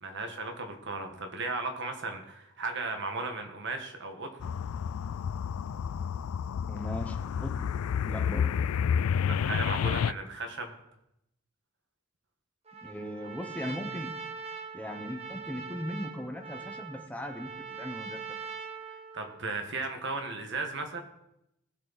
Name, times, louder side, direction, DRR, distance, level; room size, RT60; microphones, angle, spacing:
voice 1, 0.0-4.5 9.3-10.7 19.1-21.0, right 3 dB, 55° right, 5 dB, 1.7 m, -35 dB
sound 1, 4.4-10.1, left 7 dB, 90° left, 0.3 m, -30 dB
voice 2, 6.7-7.7 8.0-8.6 12.8-14.1 14.7-17.5 17.8-18.4, equal, 5° left, 4 dB, 1.1 m, -38 dB
Trumpet, 12.6-19.4, right 5 dB, 30° right, 1.5 m, -42 dB
19.5 x 6.6 x 4.2 m, 0.83 s
head